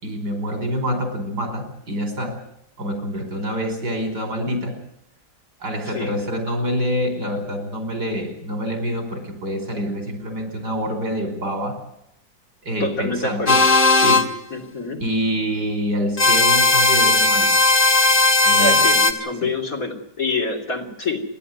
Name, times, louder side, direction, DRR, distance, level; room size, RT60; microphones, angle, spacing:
voice 1, 0.0-2.4 2.8-4.8 5.6-11.8 12.6-13.6 13.9-14.3 15.0-17.6 18.4-18.9, equal, 75° right, 6 dB, 5.3 m, -26 dB
voice 2, 12.8-13.6 14.5-15.0 18.6-21.2, left 3 dB, 55° left, 1 dB, 3.6 m, -26 dB
sound 1, 13.5-14.3 16.2-19.1, left 2 dB, 30° left, 2.0 m, -16 dB
29.5 x 11.5 x 9.5 m, 0.79 s
omnidirectional pair, 1.8 m